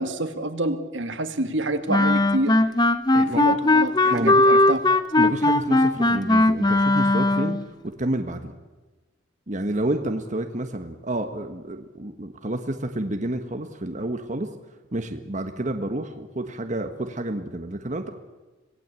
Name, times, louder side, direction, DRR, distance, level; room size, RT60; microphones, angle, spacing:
voice 1, 0.0-2.7 3.1-4.8, right 1 dB, 75° right, 8 dB, 2.1 m, -28 dB
Wind instrument woodwind instrument, 1.9-7.6, left 2 dB, 20° left, 1.0 m, -19 dB
voice 2, 3.1-3.6 4.1-4.4 5.2-8.5 9.5-14.5 14.9-18.1, right 1 dB, 40° right, 6 dB, 1.4 m, -29 dB
26.0 x 18.5 x 8.3 m, 1.2 s
head